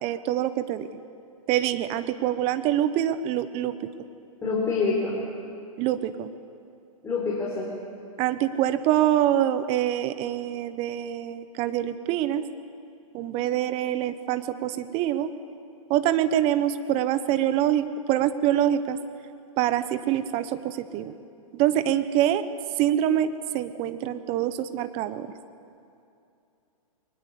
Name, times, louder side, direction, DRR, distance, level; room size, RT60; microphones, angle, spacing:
voice 1, 0.0-0.9 1.5-3.7 5.8-6.3 8.2-12.5 13.1-15.3 15.9-19.0 19.6-21.1 21.5-22.4 22.8-25.3, right 11 dB, 30° right, 12 dB, 1.0 m, -25 dB
voice 2, 4.4-5.2 7.0-7.7, left 4 dB, 15° left, -5 dB, 4.1 m, -26 dB
21.5 x 20.0 x 8.3 m, 2.6 s
hypercardioid pair, 125°, 18 cm